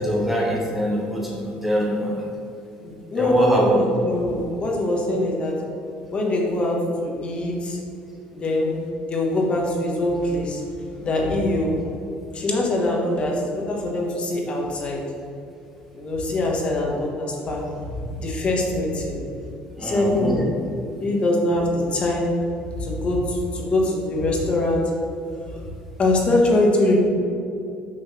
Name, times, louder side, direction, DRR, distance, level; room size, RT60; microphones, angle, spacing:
voice 1, 0.0-2.2 3.2-3.8 19.8-20.4, equal, 5° right, -3 dB, 0.9 m, -23 dB
voice 2, 2.8-5.5 6.1-7.8 8.3-8.7 9.0-10.6 11.0-11.7 12.3-15.0 15.9-17.6 18.2-19.2 19.8-20.5 21.0-22.3 22.8-24.8 26.0-27.1, left 1 dB, 35° left, -1 dB, 1.3 m, -23 dB
6.3 x 4.0 x 6.2 m, 2.6 s
cardioid pair, 135°, 3 cm